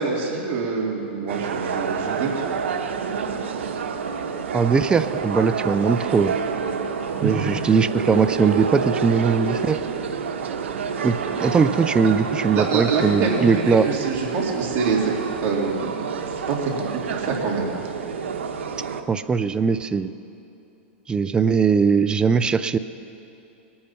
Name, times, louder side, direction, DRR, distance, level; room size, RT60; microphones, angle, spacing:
voice 1, 0.0-2.5 7.2-7.3 12.5-15.1 15.4-16.0 16.5-17.7, right 4 dB, 40° right, -2 dB, 2.9 m, -25 dB
sound 1, 1.3-19.0, right 6 dB, 90° right, 1.0 m, -28 dB
voice 2, 4.5-6.4 7.2-9.8 11.0-13.9 19.1-20.1 21.1-22.8, right 5 dB, 15° right, 13 dB, 0.4 m, -20 dB
21.0 x 8.6 x 5.8 m, 2.8 s
hypercardioid pair, 130°, 6 cm